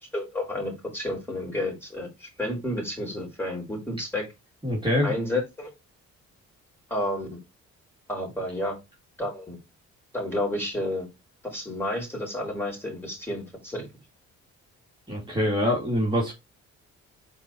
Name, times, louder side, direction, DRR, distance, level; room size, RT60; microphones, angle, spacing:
voice 1, 0.1-4.3 5.0-5.7 6.9-7.4 8.1-8.8 9.2-9.6 10.1-11.1 11.4-13.8, left 1 dB, 5° left, -1 dB, 4.4 m, -31 dB
voice 2, 4.6-5.1 15.1-16.3, left 1 dB, 15° right, -4 dB, 2.4 m, -24 dB
5.2 x 4.4 x 4.5 m, 0.23 s
cardioid pair, 90°, 30 cm